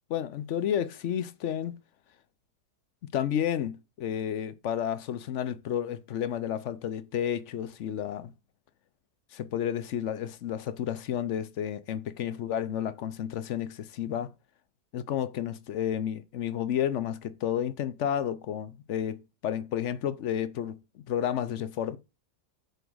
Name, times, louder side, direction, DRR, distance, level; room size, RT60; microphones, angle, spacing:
voice 1, 0.1-1.8 3.1-8.3 9.3-14.3 14.9-20.8 21.1-22.0, left 9 dB, 60° left, 0.9 m, -31 dB
6.9 x 5.1 x 6.2 m
omnidirectional pair, 1.7 m